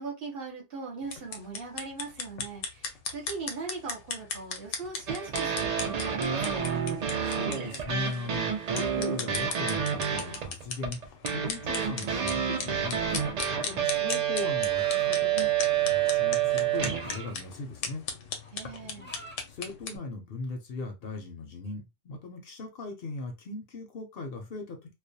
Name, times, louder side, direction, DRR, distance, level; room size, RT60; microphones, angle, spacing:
voice 1, 0.0-6.8 18.5-19.1, right 4 dB, 55° right, 0 dB, 0.9 m, -40 dB
sound 1, 1.0-20.0, left 5 dB, 90° left, 0.9 m, -38 dB
sound 2, 5.1-17.3, right 9 dB, 90° right, 0.3 m, -29 dB
voice 2, 7.2-13.2 13.5-15.5 15.8-18.0 19.5-24.9, left 3 dB, 60° left, 3 dB, 0.7 m, -39 dB
sound 3, 12.8-13.4 14.4-15.1 16.0-17.4 17.8-18.1 18.4-19.4, right 1 dB, 15° left, 0.3 m, -47 dB
2.3 x 2.1 x 2.6 m, 0.24 s
omnidirectional pair, 1.2 m